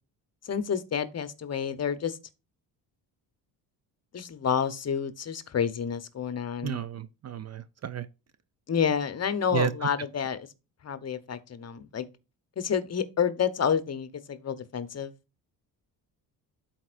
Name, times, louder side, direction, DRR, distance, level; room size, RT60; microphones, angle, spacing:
voice 1, 0.4-2.2 4.1-6.8 8.7-10.5 10.8-12.1 12.6-15.1, left 7 dB, 35° left, 0.9 m, -29 dB
voice 2, 6.6-8.1 9.5-9.7, right 9 dB, 40° right, 0.4 m, -31 dB
12.5 x 4.4 x 2.5 m
cardioid pair, 105°, 43 cm